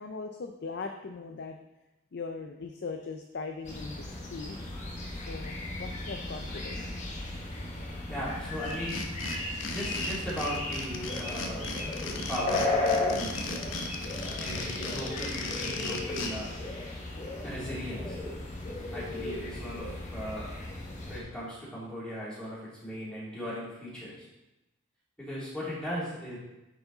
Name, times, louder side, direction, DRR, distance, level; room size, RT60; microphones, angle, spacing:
voice 1, 0.0-1.6 2.1-4.6 5.3-6.8, left 4 dB, 55° left, 5 dB, 0.5 m, -39 dB
sound 1, 3.6-21.2, left 2 dB, 35° left, 1.3 m, -35 dB
voice 2, 8.1-9.0 9.7-11.7 12.1-13.5 14.4-16.6 17.4-18.2 18.9-20.5 21.1-24.3 25.2-26.4, equal, 5° left, -9 dB, 2.6 m, -38 dB
sound 2, 8.6-16.3, left 3 dB, 70° left, 0.8 m, -37 dB
9.1 x 4.9 x 3.9 m, 0.96 s
head